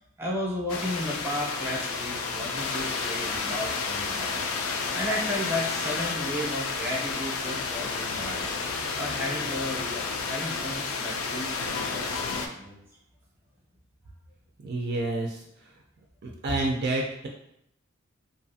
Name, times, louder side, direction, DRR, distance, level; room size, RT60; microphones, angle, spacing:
voice 1, 0.2-8.5 9.0-12.8, left 1 dB, 10° right, -3 dB, 0.6 m, -34 dB
sound 1, 0.7-12.5, left 4 dB, 80° left, 0.4 m, -31 dB
voice 2, 14.6-15.4 16.2-17.3, right 2 dB, 50° right, 0 dB, 0.4 m, -28 dB
2.6 x 2.4 x 2.6 m, 0.76 s
head